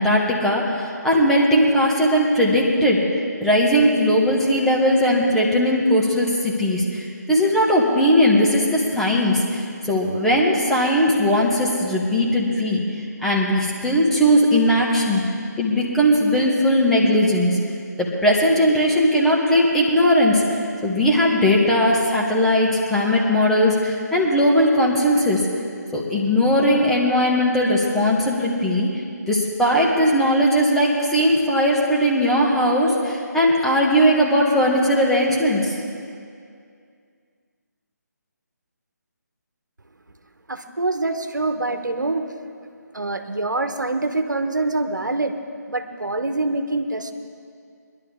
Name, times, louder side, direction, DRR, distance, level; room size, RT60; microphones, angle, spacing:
voice 1, 0.0-15.2 15.6-17.6 18.0-25.4 25.9-28.9 29.3-35.8, equal, 5° left, -5 dB, 1.4 m, -19 dB
voice 2, 40.5-42.3 42.6-45.4 45.7-47.1, right 2 dB, 85° right, 7 dB, 1.1 m, -25 dB
22.0 x 11.5 x 3.7 m, 2.3 s
figure-of-eight pair, 150°, 10 cm